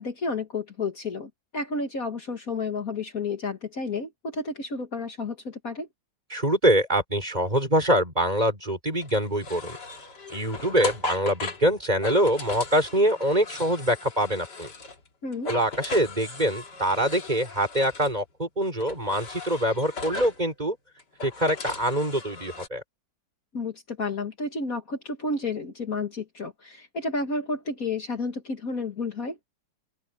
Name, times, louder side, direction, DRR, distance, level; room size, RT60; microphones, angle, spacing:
voice 1, 0.0-5.9 15.2-15.5 23.5-29.4, left 3 dB, 50° left, 2.3 m, -31 dB
voice 2, 6.3-9.8 10.3-14.7 15.5-20.8 21.2-22.8, right 1 dB, 20° right, 5.8 m, -24 dB
sound 1, 9.0-15.1 15.3-18.2 18.8-20.4 21.0-22.7, left 3 dB, 65° left, 3.1 m, -38 dB
open air
omnidirectional pair, 2.0 m